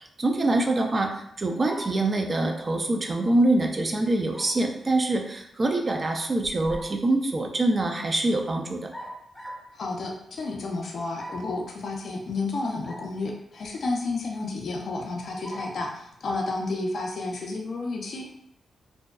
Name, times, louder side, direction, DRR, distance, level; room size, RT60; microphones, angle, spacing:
voice 1, 0.0-8.9, right 2 dB, 40° right, 3 dB, 0.4 m, -25 dB
sound 1, 1.6-2.1 4.3-4.6 6.4-7.0 8.9-9.7 11.2-11.6 12.8-13.1 13.6-13.7 15.4-15.8, equal, 10° left, 0.5 m, -40 dB
voice 2, 9.7-18.3, left 3 dB, 65° left, 1 dB, 0.4 m, -31 dB
2.5 x 2.1 x 2.3 m, 0.74 s
supercardioid pair, 55°, 0 cm